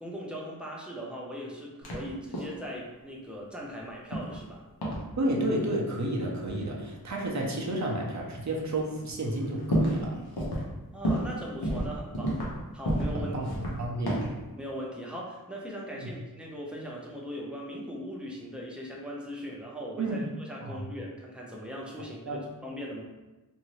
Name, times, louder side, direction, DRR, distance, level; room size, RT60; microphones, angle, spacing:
voice 1, 0.0-4.6 10.9-12.4 12.7-13.4 14.5-23.0, equal, 5° right, -3 dB, 0.7 m, -39 dB
sound 1, 1.8-2.0 2.3-2.6 4.1-4.5 4.8-5.0 6.4-6.5 7.4-7.5 8.2-8.3 8.7-8.8 9.1-10.1 10.4-10.7 11.0-11.3 11.6-12.6 12.8-13.2 13.4-14.4, equal, 85° left, 0.9 m, -30 dB
voice 2, 5.2-10.2 13.1-13.5 13.8-14.3 16.0-16.1 20.0-20.2 20.6-20.9 22.3-22.4, right 1 dB, 50° right, -1 dB, 0.7 m, -31 dB
2.7 x 2.6 x 3.0 m, 1.1 s
wide cardioid pair, 60°, 37 cm